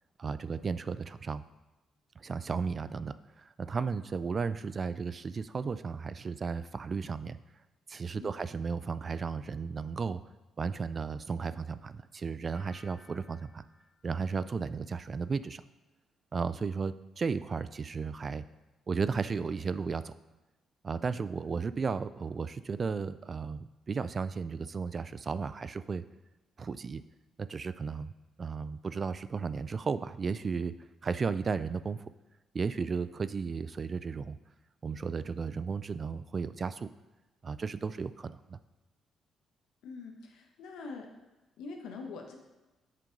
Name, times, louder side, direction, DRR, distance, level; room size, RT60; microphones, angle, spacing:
voice 1, 0.2-1.4 2.2-7.4 7.9-10.2 10.6-13.6 14.0-15.6 16.3-18.4 18.9-20.1 20.8-26.0 26.6-27.0 27.4-28.1 28.4-30.7 31.0-32.0 32.5-34.4 34.8-36.9 37.4-38.6, right 5 dB, 40° right, 14 dB, 0.3 m, -34 dB
sound 1, 12.5-15.4 15.7-16.2, left 2 dB, 45° left, 1.6 m, -62 dB
voice 2, 39.8-41.1 41.6-42.4, left 4 dB, 85° left, 2 dB, 1.1 m, -44 dB
7.5 x 3.8 x 5.2 m, 1.1 s
cardioid pair, 90°, 0 cm